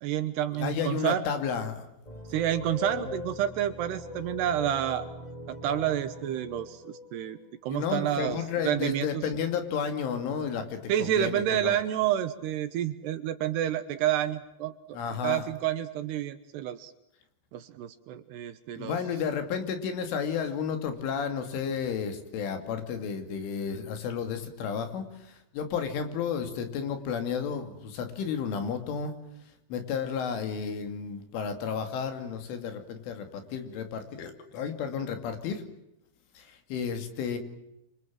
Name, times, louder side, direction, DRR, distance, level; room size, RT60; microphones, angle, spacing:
voice 1, 0.0-1.2 2.3-5.1 5.5-8.4 8.6-9.2 10.9-16.9 17.5-19.0, right 11 dB, 70° right, 10 dB, 2.8 m, -29 dB
voice 2, 0.6-1.9 3.0-3.1 7.7-11.7 14.9-15.5 18.8-29.2 29.7-35.6 36.4-37.4, left 6 dB, 80° left, 7 dB, 5.0 m, -32 dB
sound 1, 2.0-8.2, left 2 dB, 10° left, 2.3 m, -41 dB
27.0 x 25.5 x 7.6 m, 0.85 s
omnidirectional pair, 5.5 m